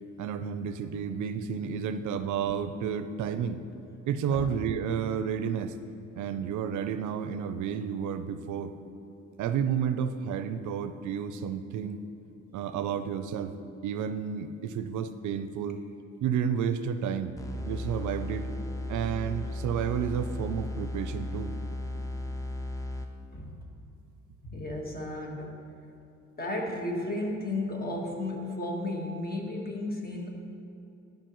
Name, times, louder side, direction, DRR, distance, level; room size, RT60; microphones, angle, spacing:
voice 1, 0.2-3.6 4.1-5.7 6.1-8.7 9.4-12.0 12.5-13.5 13.8-15.8 16.2-17.4 17.7-18.5 18.9-21.5, right 7 dB, 75° right, 10 dB, 0.5 m, -31 dB
sound 1, 17.4-23.4, left 1 dB, 10° left, 0.6 m, -35 dB
voice 2, 24.4-25.6 26.4-30.3, left 2 dB, 30° left, 0 dB, 1.5 m, -33 dB
12.5 x 5.2 x 3.0 m, 2.8 s
cardioid pair, 90°, 30 cm